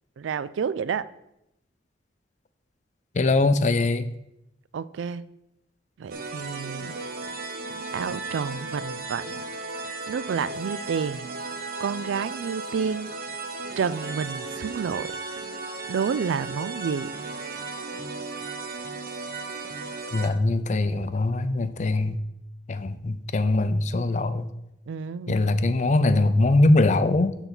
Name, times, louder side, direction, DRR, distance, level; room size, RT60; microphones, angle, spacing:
voice 1, 0.2-1.1 4.7-5.3 6.0-6.9 7.9-9.4 10.1-11.3 11.8-13.1 13.8-15.2 15.9-17.1 24.9-25.4, right 6 dB, 80° right, 17 dB, 0.3 m, -29 dB
voice 2, 3.1-4.1 20.1-22.2 22.7-24.5 25.3-27.4, left 2 dB, 40° left, 11 dB, 0.4 m, -22 dB
sound 1, 6.1-20.3, right 3 dB, 50° right, 0.7 m, -35 dB
8.0 x 3.9 x 6.0 m, 0.85 s
head